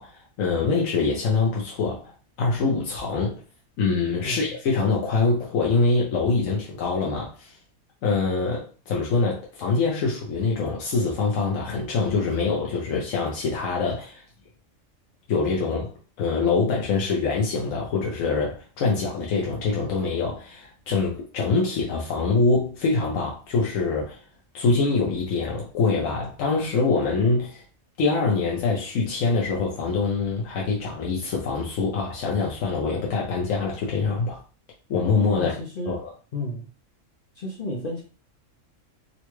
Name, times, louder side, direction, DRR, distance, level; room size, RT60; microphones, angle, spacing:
voice 1, 0.0-2.1 2.4-3.4 3.8-7.6 8.0-14.2 15.3-15.9 16.2-24.2 24.5-27.6 28.0-34.4 34.9-35.5 35.9-36.1, left 4 dB, 90° left, 1.2 m, -24 dB
voice 2, 35.3-36.0 36.3-36.7 37.4-38.0, left 1 dB, 50° left, 0.7 m, -32 dB
3.9 x 2.2 x 3.0 m
omnidirectional pair, 1.3 m